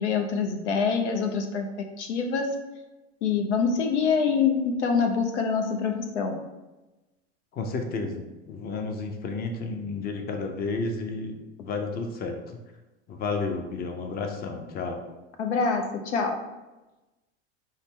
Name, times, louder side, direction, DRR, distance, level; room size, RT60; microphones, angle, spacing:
voice 1, 0.0-1.7 2.0-2.5 3.2-6.4 15.4-16.4, left 5 dB, 85° left, 4 dB, 0.7 m, -25 dB
voice 2, 7.5-12.6 13.1-15.0, left 3 dB, 25° left, 5 dB, 0.6 m, -32 dB
5.4 x 2.1 x 3.6 m, 1.1 s
hypercardioid pair, 100°, 34 cm